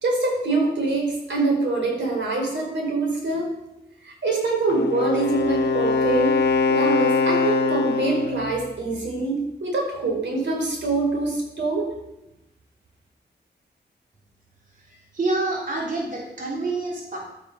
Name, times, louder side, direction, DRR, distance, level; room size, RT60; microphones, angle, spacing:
voice 1, 0.0-3.5 4.0-6.4 6.7-11.9, right 3 dB, 90° right, 0 dB, 4.9 m, -24 dB
Wind instrument woodwind instrument, 4.7-8.5, left 4 dB, 65° left, 1.5 m, -22 dB
voice 2, 15.1-17.2, right 2 dB, 50° right, -2 dB, 3.4 m, -27 dB
15.0 x 11.5 x 5.6 m, 0.90 s
wide cardioid pair, 175°, 18 cm